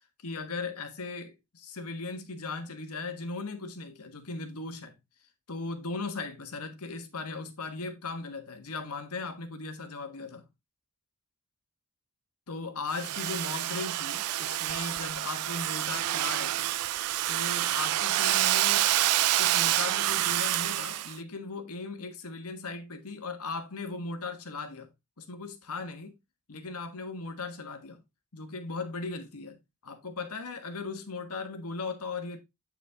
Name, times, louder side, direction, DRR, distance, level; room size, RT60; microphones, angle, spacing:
voice 1, 0.2-5.0 5.5-10.4 12.5-16.7 17.3-18.9 19.4-24.9 25.2-26.2 26.5-28.0 28.3-29.6 29.8-32.4, left 3 dB, 85° left, 1.4 m, -38 dB
Domestic sounds home sounds, 12.9-21.1, right 14 dB, 90° right, 0.4 m, -28 dB
8.4 x 5.0 x 3.5 m
head